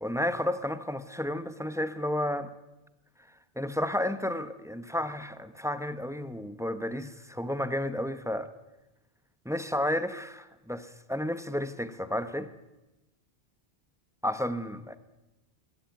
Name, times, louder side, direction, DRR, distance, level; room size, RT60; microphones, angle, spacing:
voice 1, 0.0-2.5 3.6-8.5 9.4-12.5 14.2-14.9, left 1 dB, 5° right, 11 dB, 1.0 m, -32 dB
21.5 x 16.5 x 9.4 m, 1.0 s
omnidirectional pair, 1.1 m